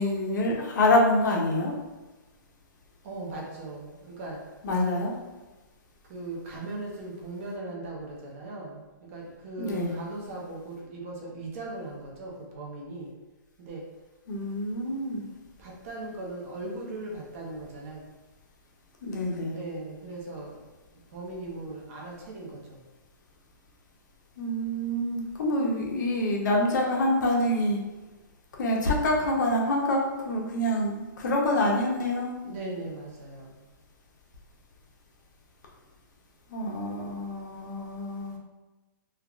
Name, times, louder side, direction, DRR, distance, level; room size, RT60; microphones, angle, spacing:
voice 1, 0.0-1.7 4.6-5.2 9.6-10.0 14.3-15.2 19.0-19.6 24.4-27.8 28.6-32.3 36.5-38.4, left 1 dB, 60° left, -1 dB, 0.7 m, -26 dB
voice 2, 3.0-4.4 6.0-13.1 13.6-13.8 15.6-18.0 19.5-22.8 32.4-33.6, right 2 dB, 40° right, -2 dB, 0.7 m, -39 dB
3.4 x 2.3 x 2.3 m, 1.2 s
hypercardioid pair, 160°, 11 cm